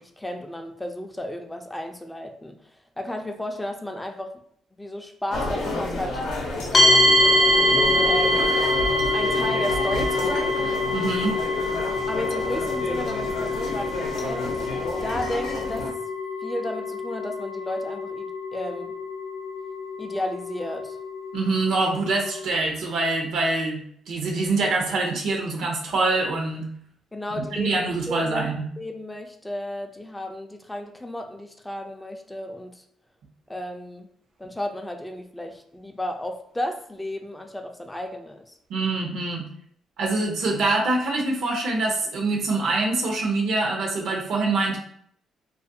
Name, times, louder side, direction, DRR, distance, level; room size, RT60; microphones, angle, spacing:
voice 1, 0.0-4.3 4.8-6.2 8.0-8.5 9.1-10.6 12.1-14.7 15.0-16.0 16.4-18.9 20.0-21.0 27.1-28.5 28.8-32.8 33.5-34.1 34.4-38.6, left 1 dB, 10° left, 4 dB, 0.3 m, -33 dB
sound 1, 5.3-15.9, left 2 dB, 85° left, 0.6 m, -30 dB
sound 2, 6.7-22.5, left 1 dB, 40° left, 0.6 m, -25 dB
voice 2, 10.9-11.4 21.3-26.7 27.3-28.7 38.7-39.5 40.0-44.8, right 3 dB, 75° right, 0 dB, 0.6 m, -25 dB
2.4 x 2.2 x 2.6 m, 0.65 s
cardioid pair, 90°, 0 cm